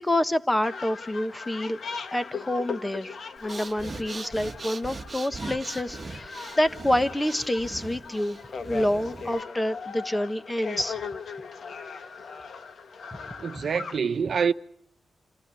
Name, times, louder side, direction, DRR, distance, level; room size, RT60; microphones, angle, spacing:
voice 1, 0.0-1.8 2.1-3.2 3.4-10.9, left 1 dB, 15° left, 1.3 m, -27 dB
sound 1, 0.6-14.0, left 5 dB, 70° left, 1.6 m, -39 dB
Breathing, 3.4-9.4, right 4 dB, 35° right, 1.4 m, -40 dB
voice 2, 13.4-14.5, right 6 dB, 65° right, 1.0 m, -26 dB
27.5 x 16.0 x 9.8 m
wide cardioid pair, 120°, 0 cm